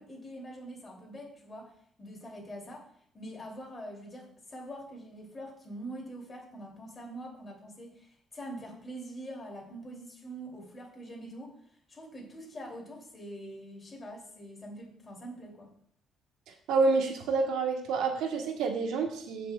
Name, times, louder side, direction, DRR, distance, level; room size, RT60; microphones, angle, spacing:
voice 1, 0.0-1.7 2.0-2.9 3.1-11.5 11.9-15.7, right 1 dB, 25° left, -1 dB, 3.0 m, -44 dB
voice 2, 16.7-19.5, right 4 dB, 80° right, 2 dB, 1.4 m, -28 dB
16.0 x 5.8 x 2.4 m, 0.65 s
cardioid pair, 130°, 0 cm